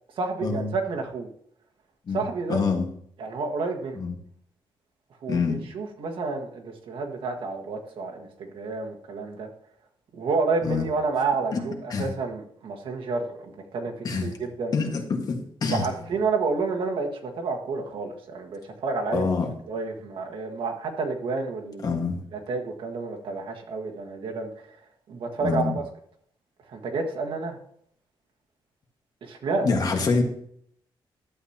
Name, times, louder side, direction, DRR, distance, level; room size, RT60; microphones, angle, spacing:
voice 1, 0.2-1.3 2.1-2.6 3.2-4.0 5.2-9.5 10.1-14.7 15.7-19.3 19.7-22.0 22.3-24.5 25.1-25.8 26.7-27.6 29.2-29.7, right 4 dB, 70° right, 2 dB, 1.7 m, -30 dB
voice 2, 2.5-2.9 4.0-4.1 5.3-5.6 10.6-10.8 11.5-11.6 11.9-12.1 14.0-14.3 14.7-15.9 19.1-19.5 21.8-22.2 25.4-25.7 29.6-30.2, left 4 dB, 45° left, 3 dB, 1.6 m, -25 dB
12.0 x 8.0 x 2.9 m, 0.65 s
wide cardioid pair, 160°, 9 cm